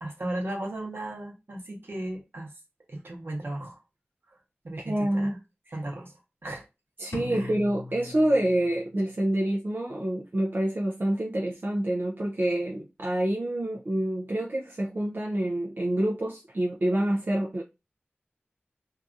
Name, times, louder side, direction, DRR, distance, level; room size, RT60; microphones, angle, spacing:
voice 1, 0.0-2.5 2.9-3.8 4.6-5.4 5.7-6.1 6.4-6.7 7.3-7.5, right 1 dB, 70° right, 1.0 m, -35 dB
voice 2, 4.8-5.8 7.0-17.6, right 1 dB, 55° right, 0.5 m, -27 dB
sound 1, 7.1-9.1, left 3 dB, 70° left, 0.5 m, -40 dB
2.7 x 2.4 x 2.5 m
wide cardioid pair, 50°, 4 cm